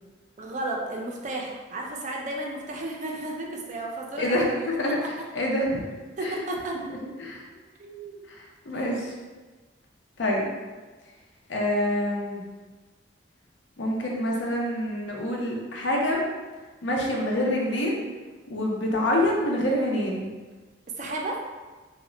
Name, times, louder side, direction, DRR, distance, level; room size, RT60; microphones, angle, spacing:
voice 1, 0.4-4.7 6.2-6.8 7.8-8.2 21.0-21.4, right 2 dB, 40° right, 0 dB, 0.4 m, -33 dB
voice 2, 4.2-5.8 6.2-6.4 6.9-7.4 8.3-9.1 10.2-10.5 11.5-12.5 13.8-16.2 16.8-18.0 18.5-20.3, left 1 dB, 80° left, -1 dB, 0.5 m, -26 dB
2.1 x 2.0 x 3.7 m, 1.3 s
head